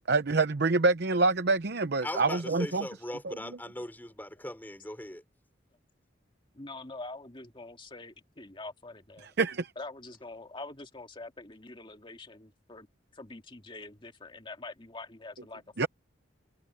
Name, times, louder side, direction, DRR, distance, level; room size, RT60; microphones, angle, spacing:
voice 1, 0.1-2.8 3.2-3.3 9.4-9.7 15.8-15.9, right 3 dB, 60° right, 0.8 m, -26 dB
voice 2, 2.0-5.2, left 1 dB, 10° left, 5.7 m, -39 dB
voice 3, 6.5-9.3 9.8-12.9 13.1-15.9, left 2 dB, 25° left, 2.2 m, -45 dB
head